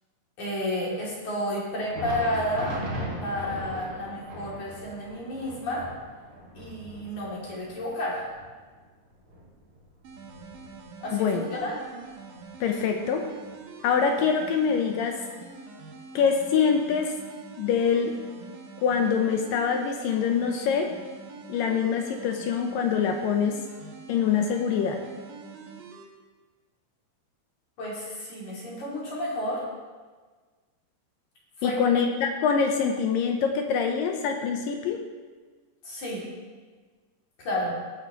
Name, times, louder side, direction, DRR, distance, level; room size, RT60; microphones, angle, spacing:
voice 1, 0.4-2.8 3.2-5.8 6.5-8.2 11.0-11.3 11.5-11.7 27.8-29.7 31.6-31.8 35.8-36.3 37.4-37.8, left 1 dB, 50° left, -6 dB, 3.7 m, -31 dB
Thunder, 1.7-11.2 11.5-11.7 12.4-12.5 13.5-13.6, equal, 35° right, 3.4 m, -39 dB
sound 1, 10.0-26.0, right 4 dB, 65° right, 2.5 m, -45 dB
voice 2, 11.1-11.5 12.6-13.3 13.8-15.2 16.2-17.2 17.6-18.2 18.8-20.9 21.5-23.6 24.1-25.0 31.6-35.0, left 6 dB, 75° left, 4 dB, 2.1 m, -24 dB
17.5 x 8.8 x 2.9 m, 1.4 s
omnidirectional pair, 4.6 m